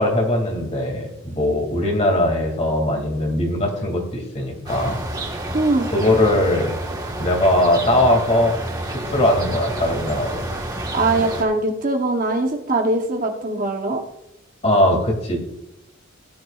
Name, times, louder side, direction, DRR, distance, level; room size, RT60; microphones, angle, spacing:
voice 1, 0.0-5.0 5.9-6.8 7.2-8.6 8.9-10.5 14.6-15.4, left 1 dB, 30° left, 2 dB, 2.4 m, -20 dB
sound 1, 4.7-11.4, right 1 dB, 20° right, 1.4 m, -29 dB
voice 2, 5.5-5.9 10.9-14.0, right 2 dB, 40° right, 3 dB, 1.0 m, -21 dB
16.5 x 11.0 x 2.4 m, 0.86 s
head